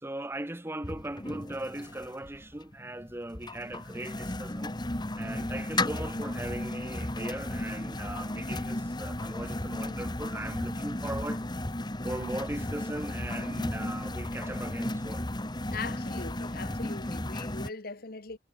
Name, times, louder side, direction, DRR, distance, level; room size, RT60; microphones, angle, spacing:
voice 1, 0.0-4.7 5.2-11.4 12.0-15.3, right 1 dB, 15° right, 1.0 m, -38 dB
sound 1, 0.8-17.7, left 1 dB, 25° left, 1.5 m, -34 dB
voice 2, 15.7-18.4, left 4 dB, 55° left, 1.4 m, -40 dB
head